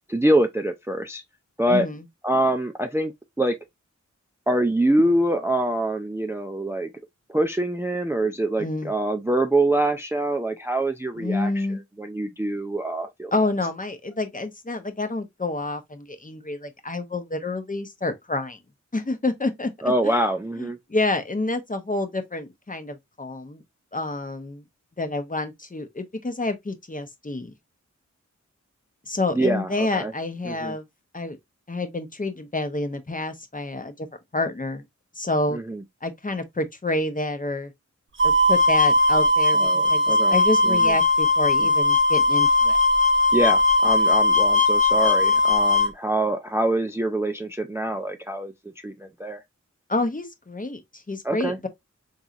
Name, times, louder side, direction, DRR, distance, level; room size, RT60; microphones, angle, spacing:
voice 1, 0.1-1.2 1.6-1.9 2.2-3.1 3.4-3.6 4.5-6.9 7.3-11.7 12.0-13.3 19.8-20.8 29.3-30.1 30.4-30.8 35.5-35.8 39.5-40.4 40.6-41.0 41.6-41.7 43.3-48.5 48.8-49.4 51.2-51.7, right 1 dB, 10° right, 0.4 m, -25 dB
voice 2, 1.7-2.0 8.6-8.9 11.2-11.8 13.3-18.6 18.9-20.2 20.6-23.6 23.9-24.6 25.0-27.5 29.1-30.9 31.1-31.4 31.7-34.1 34.3-34.8 35.2-35.6 36.0-37.7 38.2-42.8 49.9-51.7, left 2 dB, 25° left, 0.7 m, -28 dB
sound 1, 38.2-45.9, left 2 dB, 40° right, 1.0 m, -19 dB
3.8 x 2.9 x 2.4 m
wide cardioid pair, 50°, 30 cm